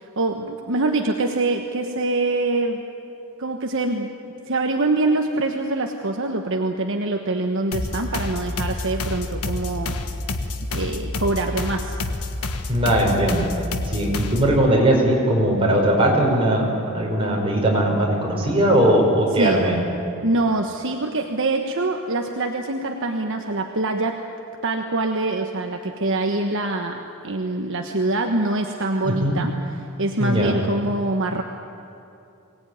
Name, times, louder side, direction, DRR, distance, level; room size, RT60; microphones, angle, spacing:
voice 1, 0.0-2.8 3.4-4.1 4.5-10.0 10.7-12.0 19.4-19.7 20.2-24.2 24.6-27.0 27.2-29.5 30.0-31.4, right 2 dB, 60° right, 3 dB, 1.3 m, -24 dB
sound 1, 7.7-14.6, left 2 dB, 75° left, 1.4 m, -28 dB
voice 2, 12.7-13.5 13.9-19.8 29.0-29.4 30.2-30.5, right 1 dB, 25° right, -2 dB, 5.2 m, -19 dB
23.5 x 18.5 x 9.4 m, 2.7 s
head